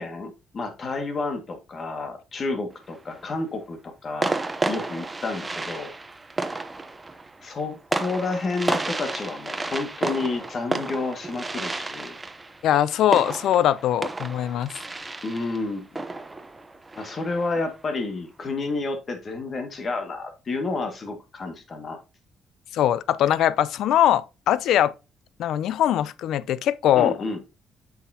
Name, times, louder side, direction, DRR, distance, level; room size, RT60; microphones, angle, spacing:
voice 1, 0.0-4.3 4.7-5.9 7.4-12.2 15.2-15.8 17.0-22.0 27.0-27.4, left 3 dB, 45° left, 1.9 m, -30 dB
sound 1, 2.7-3.3 4.2-17.6, right 2 dB, 20° right, 0.7 m, -32 dB
voice 2, 12.6-14.7 22.7-24.9 25.4-27.1, left 11 dB, 80° left, 0.4 m, -21 dB
8.3 x 5.8 x 2.8 m
cardioid pair, 90°, 0 cm